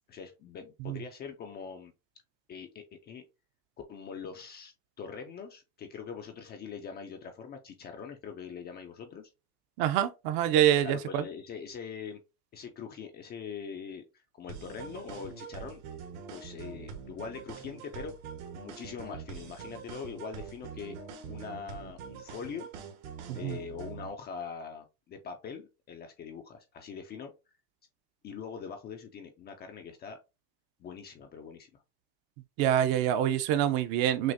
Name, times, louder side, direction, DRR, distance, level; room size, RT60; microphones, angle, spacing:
voice 1, 0.1-1.9 2.5-3.2 3.9-9.3 10.8-12.2 12.5-15.8 16.3-18.1 18.5-21.0 21.3-22.7 23.3-27.3 28.2-30.2 30.8-31.8, left 6 dB, 25° left, 0.4 m, -42 dB
voice 2, 9.8-11.2 23.3-23.6 32.6-34.3, right 11 dB, 50° right, 0.6 m, -26 dB
sound 1, 14.5-24.1, right 6 dB, 70° right, 1.3 m, -44 dB
6.1 x 2.4 x 2.6 m
supercardioid pair, 140°, 45 cm